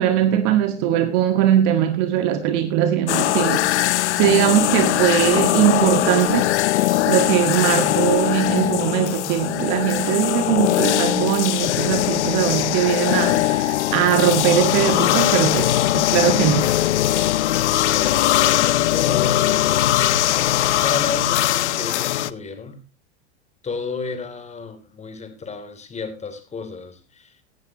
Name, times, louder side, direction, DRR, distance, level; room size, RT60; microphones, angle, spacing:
voice 1, 0.0-3.7 4.1-6.5 7.1-16.7, right 10 dB, 55° right, 1.8 m, -20 dB
sound 1, 3.1-22.3, left 14 dB, 80° left, 0.8 m, -20 dB
voice 2, 17.7-20.3 20.8-22.8 23.6-27.4, left 4 dB, 20° left, 3.1 m, -32 dB
18.0 x 12.0 x 3.0 m
hypercardioid pair, 110°, 34 cm